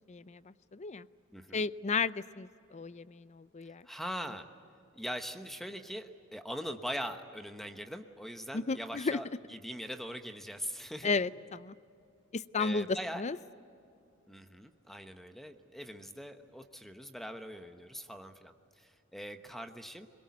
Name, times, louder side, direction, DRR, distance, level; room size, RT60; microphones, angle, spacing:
voice 1, 0.1-1.1 1.5-3.8 8.5-9.2 11.0-11.7 12.3-12.9 13.2-13.4, left 4 dB, 35° left, 17 dB, 0.5 m, -34 dB
voice 2, 1.3-1.6 3.8-4.5 4.9-11.2 12.6-13.2 14.3-20.1, equal, ahead, 7 dB, 1.0 m, -42 dB
23.0 x 22.0 x 9.5 m, 2.6 s
head